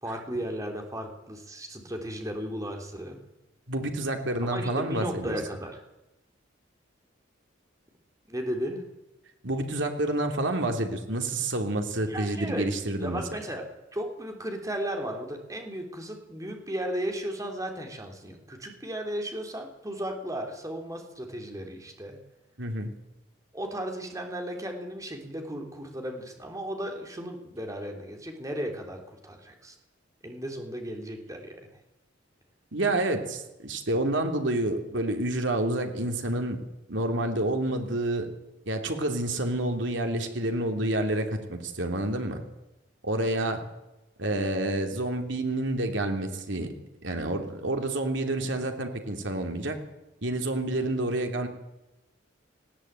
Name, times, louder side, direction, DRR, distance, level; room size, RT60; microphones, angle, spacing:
voice 1, 0.0-3.2 4.5-5.8 8.3-8.8 12.1-12.7 13.0-13.6 13.9-22.2 23.5-29.7 30.2-31.6, equal, 15° right, 3 dB, 3.4 m, -35 dB
voice 2, 3.7-5.4 9.4-13.2 22.6-22.9 32.7-36.6 36.9-38.3 38.7-42.4 43.0-43.6 44.2-46.7 47.0-49.8 50.2-51.5, right 1 dB, 70° right, 4 dB, 3.1 m, -28 dB
19.0 x 16.0 x 9.0 m, 0.97 s
head